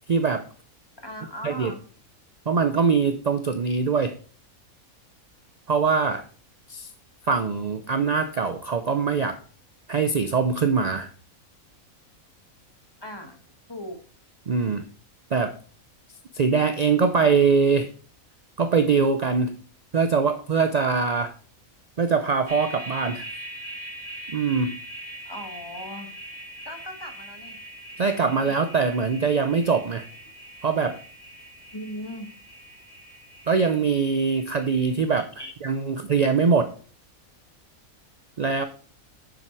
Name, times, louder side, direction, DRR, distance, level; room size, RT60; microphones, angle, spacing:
voice 1, 0.1-0.4 1.4-1.7 2.5-4.1 5.7-6.2 6.7-6.9 7.3-9.4 9.9-11.1 14.5-14.8 15.3-15.5 16.3-17.9 18.6-19.5 19.9-21.3 22.0-23.3 24.3-24.7 28.0-30.0 30.6-31.0 33.5-35.3 35.6-36.7 38.4-38.6, right 5 dB, 55° right, 8 dB, 0.4 m, -22 dB
voice 2, 1.0-1.8 13.0-13.4 13.7-14.0 25.2-26.1 26.6-27.6 31.7-32.3 35.4-35.5, equal, 20° left, 4 dB, 1.4 m, -38 dB
sound 1, 22.5-35.0, equal, 25° right, 2.7 m, -42 dB
7.2 x 6.5 x 4.6 m, 0.41 s
omnidirectional pair, 1.5 m